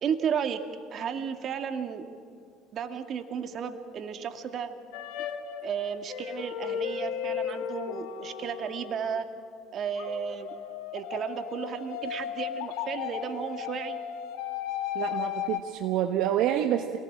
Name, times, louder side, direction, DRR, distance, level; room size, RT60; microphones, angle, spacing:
voice 1, 0.0-0.6 0.9-2.0 2.7-4.8 5.6-9.3 9.7-10.5 10.9-14.0, right 7 dB, 50° right, 6 dB, 2.3 m, -33 dB
sound 1, 4.9-9.2 10.0-15.6, left 9 dB, 70° left, 1.8 m, -35 dB
voice 2, 14.9-17.0, right 11 dB, 65° right, 4 dB, 1.3 m, -27 dB
27.5 x 19.0 x 8.9 m, 2.3 s
hypercardioid pair, 65°, 0 cm